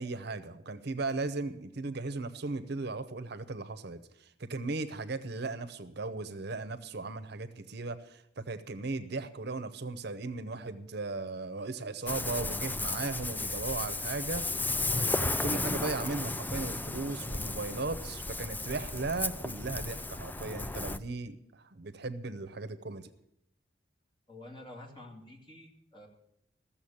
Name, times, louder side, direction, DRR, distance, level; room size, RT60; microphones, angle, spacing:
voice 1, 0.0-14.4 14.8-23.1, right 3 dB, 60° right, 12 dB, 0.8 m, -37 dB
Ocean, 12.1-21.0, left 2 dB, 10° left, 0.4 m, -34 dB
voice 2, 24.3-26.1, left 1 dB, 25° left, 1 dB, 2.4 m, -49 dB
14.5 x 7.2 x 8.6 m, 0.79 s
head